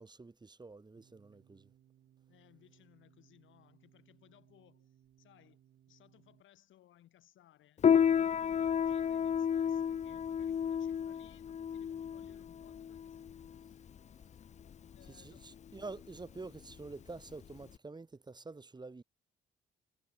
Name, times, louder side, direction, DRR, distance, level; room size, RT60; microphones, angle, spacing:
voice 1, 0.0-1.7 15.1-19.0, right 3 dB, 20° right, 2.2 m, -48 dB
sound 1, 1.0-6.4, right 10 dB, 70° right, 7.6 m, -67 dB
voice 2, 2.3-5.6 5.9-13.6 14.6-15.7, left 12 dB, 75° left, 7.3 m, -64 dB
Piano, 7.8-17.8, left 8 dB, 35° left, 0.5 m, -32 dB
cardioid pair, 90°, 20 cm